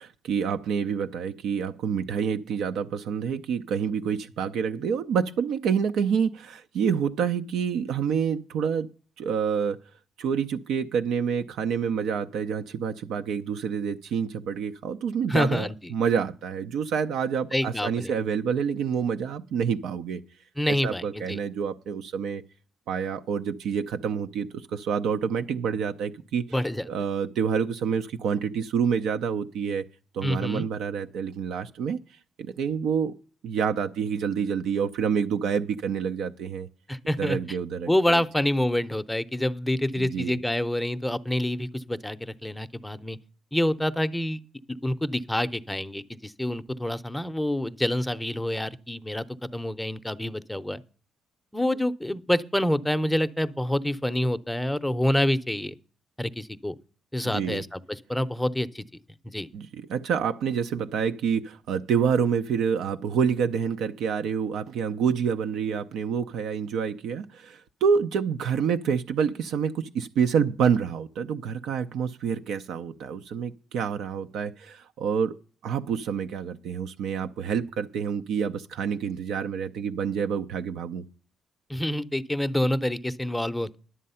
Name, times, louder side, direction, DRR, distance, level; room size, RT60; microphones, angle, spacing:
voice 1, 0.0-8.9 9.2-9.8 10.2-20.2 20.8-22.4 22.9-26.4 26.9-29.8 30.1-32.0 32.4-33.1 33.4-36.7 37.2-38.2 40.0-40.4 57.2-57.6 59.5-75.3 75.6-81.0, right 7 dB, 80° right, 0.6 m, -27 dB
voice 2, 15.3-15.9 17.5-18.1 20.6-21.4 26.5-26.9 30.2-30.7 36.9-37.6 37.9-43.2 43.5-44.4 44.8-50.8 51.5-55.7 56.2-56.7 57.1-58.8 59.2-59.5 81.7-83.8, left 1 dB, 5° left, 0.6 m, -27 dB
11.0 x 7.5 x 5.6 m
cardioid pair, 90°, 0 cm